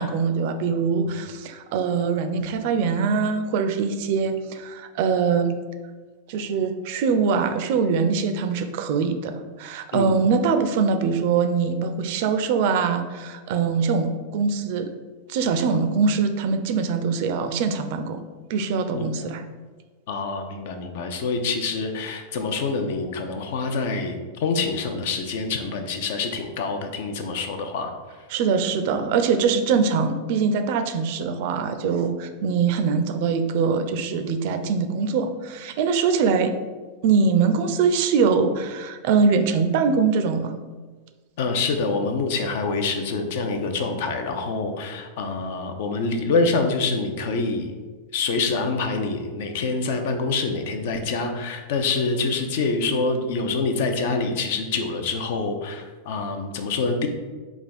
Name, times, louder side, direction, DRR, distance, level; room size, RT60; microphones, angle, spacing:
voice 1, 0.0-5.6 6.3-14.9 15.3-18.2 18.5-19.4 28.3-36.5 37.0-40.5, right 5 dB, 60° right, 9 dB, 0.4 m, -23 dB
voice 2, 20.1-27.9 41.4-47.9 48.1-57.1, left 3 dB, 65° left, 6 dB, 0.5 m, -26 dB
3.4 x 2.4 x 4.1 m, 1.4 s
hypercardioid pair, 125°, 0 cm